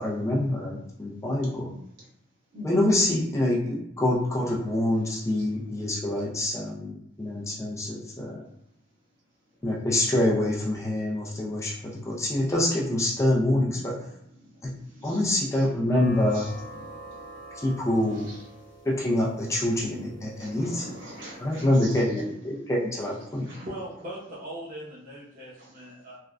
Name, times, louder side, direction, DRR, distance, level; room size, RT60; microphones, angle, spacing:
voice 1, 0.0-1.7 2.6-8.4 9.6-13.9 14.6-14.7 15.0-16.4 17.6-18.3 18.9-20.9 21.4-23.5, left 1 dB, 15° left, -4 dB, 0.4 m, -26 dB
voice 2, 5.4-6.1 14.7-15.7 16.3-17.0 18.1-18.4 20.3-22.6 23.4-23.7, equal, 70° right, -7 dB, 1.4 m, -43 dB
sound 1, 15.9-21.9, right 1 dB, 65° left, 1.0 m, -46 dB
voice 3, 23.6-26.2, right 1 dB, 45° right, -7 dB, 0.7 m, -39 dB
3.3 x 2.1 x 2.4 m, 0.79 s
head